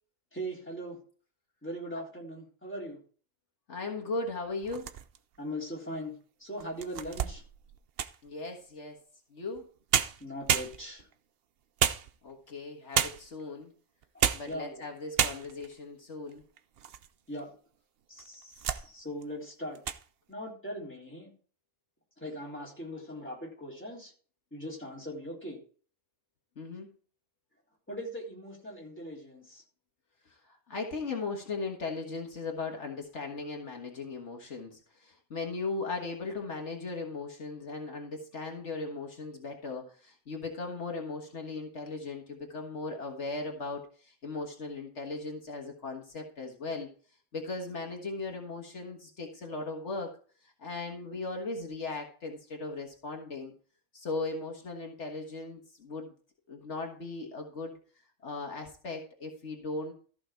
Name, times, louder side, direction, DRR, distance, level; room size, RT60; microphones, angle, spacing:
voice 1, 0.3-1.0 1.6-3.0 5.4-7.4 10.2-11.1 14.1-14.9 17.3-17.5 18.1-19.8 20.3-21.3 22.2-24.1 24.5-25.6 27.9-29.6, equal, 10° left, -3 dB, 3.5 m, -40 dB
voice 2, 3.7-4.9 8.2-9.0 9.3-9.7 12.2-13.7 14.3-16.4 26.6-26.9 30.3-46.9 47.3-50.1 50.4-53.5 53.9-56.1 56.5-57.8 58.2-59.9, left 3 dB, 65° left, 2 dB, 1.8 m, -38 dB
sound 1, 4.6-5.4 6.0-6.1 6.6-8.3 9.6-9.7 9.9-11.1 11.8-12.5 12.9-13.4 14.0-14.6 14.8-14.9 15.2-15.7 16.3-17.1 17.4-17.5 18.2-18.9 19.2-19.4 19.7-20.0, right 9 dB, 60° right, 0.8 m, -30 dB
14.0 x 5.9 x 4.5 m, 0.42 s
omnidirectional pair, 1.3 m